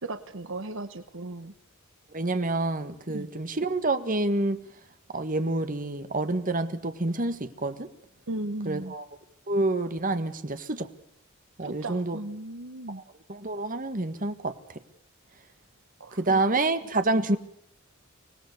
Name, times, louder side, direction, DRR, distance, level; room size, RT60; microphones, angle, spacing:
voice 1, 0.0-1.5 3.1-3.3 8.3-8.9 11.6-13.0 16.0-16.4 17.1-17.2, right 2 dB, 65° right, 11 dB, 1.1 m, -36 dB
voice 2, 2.1-4.6 5.1-7.9 8.6-9.0 9.5-10.9 11.6-12.2 12.9-13.0 13.3-14.5 16.2-17.4, right 2 dB, 40° right, 10 dB, 1.7 m, -27 dB
25.5 x 19.0 x 6.9 m, 0.69 s
head